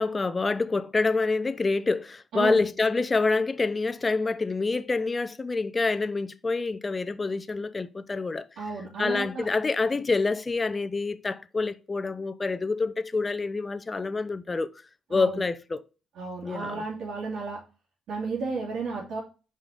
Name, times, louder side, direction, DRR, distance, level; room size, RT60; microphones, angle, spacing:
voice 1, 0.0-8.4 9.0-14.7 15.1-15.8 16.4-16.8, left 3 dB, 25° left, 0.6 m, -27 dB
voice 2, 2.3-2.6 8.6-9.5 15.1-15.4 16.2-17.6 18.1-19.2, right 4 dB, 75° right, 3.1 m, -33 dB
5.6 x 5.0 x 5.2 m
cardioid pair, 90°, 0 cm